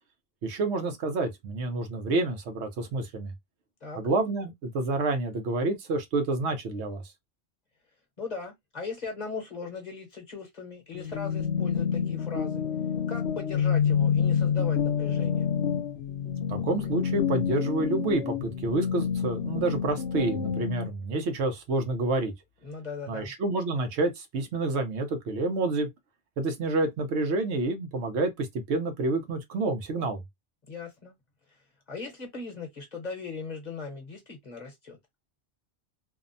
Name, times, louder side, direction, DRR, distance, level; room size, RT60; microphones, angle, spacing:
voice 1, 0.4-3.3 4.0-7.0 16.5-22.3 23.1-25.9 26.4-30.2, right 2 dB, 80° right, 0.9 m, -28 dB
voice 2, 8.2-12.6 13.1-15.5 22.6-23.3 30.7-31.1 31.9-35.0, left 4 dB, 40° left, 0.9 m, -38 dB
sound 1, 10.9-20.9, left 7 dB, 80° left, 0.9 m, -28 dB
2.7 x 2.0 x 2.5 m
omnidirectional pair, 1.2 m